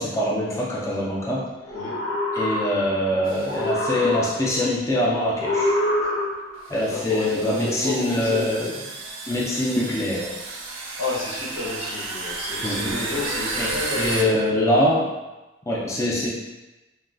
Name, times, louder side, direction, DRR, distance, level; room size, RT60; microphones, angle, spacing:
voice 1, 0.0-1.5 2.3-5.8 6.7-8.7 9.3-10.3 12.6-13.0 13.6-13.7 14.0-15.1 15.6-16.3, left 1 dB, 15° left, -5 dB, 0.3 m, -23 dB
sound 1, 1.6-3.1 3.4-4.7 5.4-6.7, left 1 dB, 70° left, 0.7 m, -26 dB
voice 2, 1.7-2.0 6.8-8.7 11.0-14.3, left 3 dB, 90° left, -6 dB, 1.0 m, -31 dB
sound 2, 3.3-3.6 4.5-4.6 5.7-5.8 6.7-14.2, right 3 dB, 85° right, 0.4 m, -32 dB
3.0 x 2.3 x 2.4 m, 1.1 s
head